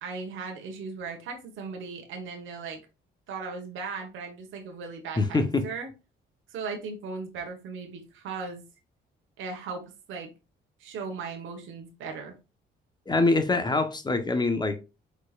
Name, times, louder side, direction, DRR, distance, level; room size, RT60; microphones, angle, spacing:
voice 1, 0.0-2.8 3.3-5.4 5.6-5.9 6.5-8.6 9.4-9.8 10.1-10.3 10.8-12.3, right 4 dB, 80° right, 3 dB, 1.3 m, -37 dB
voice 2, 5.2-5.6 13.1-14.8, left 3 dB, 20° left, 8 dB, 1.0 m, -24 dB
4.7 x 4.4 x 2.4 m, 0.28 s
cardioid pair, 90°, 20 cm